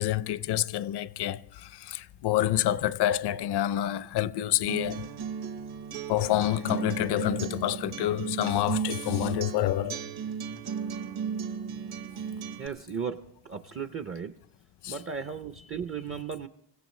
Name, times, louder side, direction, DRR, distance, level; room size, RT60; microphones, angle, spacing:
voice 1, 0.0-5.1 6.1-10.0 14.8-15.0, left 13 dB, 60° left, 0.6 m, -28 dB
Acoustic guitar, 4.7-12.7, right 7 dB, 55° right, 1.0 m, -35 dB
voice 2, 12.6-14.4 14.9-16.5, right 6 dB, 30° right, 0.5 m, -36 dB
26.0 x 16.5 x 3.1 m
cardioid pair, 160°, 45 cm